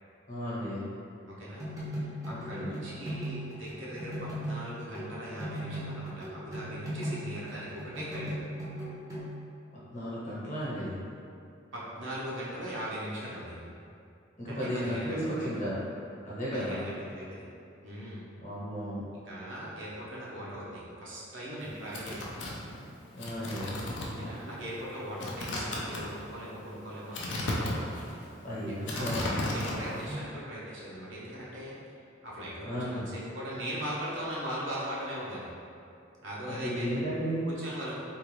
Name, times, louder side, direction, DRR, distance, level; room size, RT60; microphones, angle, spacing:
voice 1, 0.3-0.9 2.3-2.7 9.9-11.0 14.4-15.8 16.2-16.8 18.4-19.0 23.1-23.8 28.4-29.2 30.1-30.2 32.6-33.1 36.5-37.5, equal, 40° left, -9 dB, 1.0 m, -34 dB
voice 2, 1.3-1.6 2.2-8.4 11.7-13.7 14.5-15.5 16.5-17.4 17.8-18.2 19.2-22.3 24.2-27.9 28.6-31.7 32.2-35.5 36.2-37.0 37.4-38.0, equal, 75° right, -7 dB, 0.8 m, -39 dB
sound 1, 1.6-5.1 5.4-9.4, equal, 15° right, 0.6 m, -38 dB
sound 2, 21.6-30.1, left 1 dB, 65° left, 0.5 m, -35 dB
3.6 x 2.5 x 3.0 m, 2.6 s
head